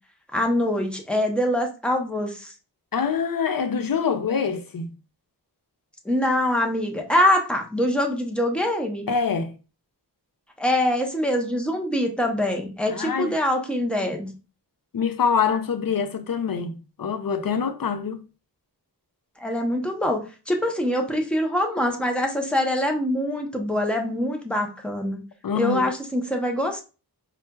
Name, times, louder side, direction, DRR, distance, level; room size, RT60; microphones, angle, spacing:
voice 1, 0.3-2.5 6.0-9.1 10.6-14.3 19.4-25.2 25.5-26.8, left 1 dB, 5° left, 0.7 m, -24 dB
voice 2, 2.9-5.0 9.1-9.6 12.9-13.3 14.9-18.2 25.4-25.9, left 6 dB, 55° left, 0.5 m, -25 dB
4.3 x 2.3 x 2.2 m
wide cardioid pair, 50°, 41 cm